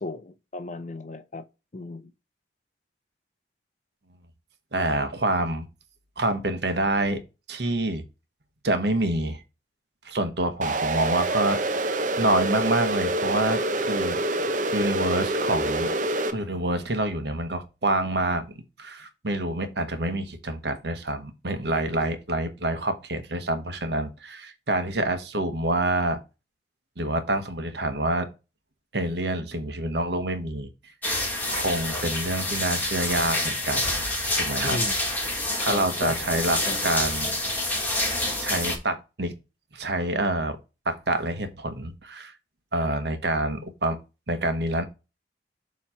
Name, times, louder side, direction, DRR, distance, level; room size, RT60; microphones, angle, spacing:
voice 1, 0.0-1.4 1.7-2.1 34.6-34.9 35.7-36.1 36.7-36.8, left 2 dB, 45° left, 0.6 m, -34 dB
voice 2, 4.7-5.6 6.2-7.2 7.5-8.0 8.6-9.4 10.0-11.6 12.2-14.4 14.7-15.9 16.3-18.4 18.8-26.2 27.0-28.3 28.9-30.7 31.5-33.9 34.4-34.8 35.6-37.4 38.4-39.3 39.7-40.6 40.8-42.3 42.7-44.0 44.3-44.9, right 2 dB, 70° right, 1.1 m, -27 dB
sound 1, 10.6-16.3, right 2 dB, 45° right, 0.7 m, -26 dB
sound 2, 31.0-38.8, left 2 dB, 10° left, 1.5 m, -27 dB
7.2 x 3.1 x 5.5 m
head